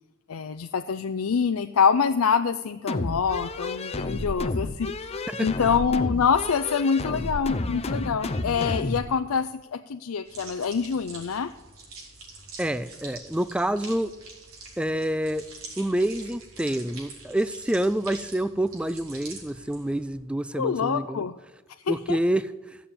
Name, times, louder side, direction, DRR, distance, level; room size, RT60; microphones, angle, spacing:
voice 1, 0.3-5.1 5.4-11.5 20.5-21.4 21.8-22.2, left 6 dB, 80° left, 8 dB, 0.5 m, -25 dB
sound 1, 2.9-9.1, left 2 dB, 30° left, 0.7 m, -31 dB
voice 2, 5.3-5.7 12.6-14.1 14.8-15.4 15.8-21.3 21.9-22.8, right 1 dB, 5° right, 14 dB, 0.4 m, -27 dB
sound 2, 10.2-20.1, right 3 dB, 80° right, 4.0 m, -45 dB
15.0 x 7.1 x 8.6 m, 1.1 s
head